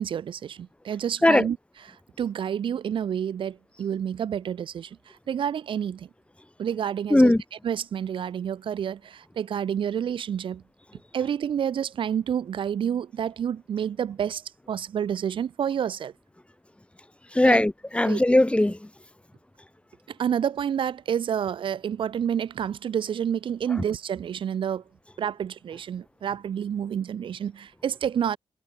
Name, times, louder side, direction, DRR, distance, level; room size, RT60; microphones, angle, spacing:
voice 1, 0.0-1.6 1.9-6.1 6.6-7.3 7.6-10.6 11.1-16.1 17.4-17.6 18.0-18.2 20.1-24.8 25.2-28.4, right 8 dB, 90° right, 7.7 m, -29 dB
voice 2, 7.1-7.4 17.3-18.8, left 1 dB, 15° left, 5.6 m, -19 dB
cardioid pair, 70°, 8 cm